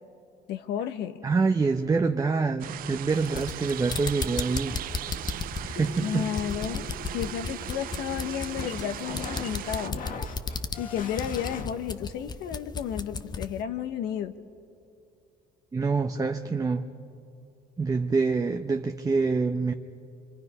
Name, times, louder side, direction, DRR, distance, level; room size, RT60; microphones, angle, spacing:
voice 1, 0.5-1.2 6.0-6.9 7.1-10.0 10.8-14.3, left 9 dB, 85° left, 8 dB, 1.0 m, -32 dB
voice 2, 1.2-4.8 5.7-6.3 15.7-16.9 17.8-19.7, right 4 dB, 20° right, 5 dB, 0.7 m, -26 dB
sound 1, 2.6-9.9, right 13 dB, 60° right, 0.4 m, -38 dB
sound 2, 3.1-13.6, left 4 dB, 25° left, 0.7 m, -35 dB
sound 3, 5.7-11.7, left 5 dB, 55° left, 1.7 m, -41 dB
26.0 x 25.5 x 5.5 m, 2.5 s
cardioid pair, 110°, 17 cm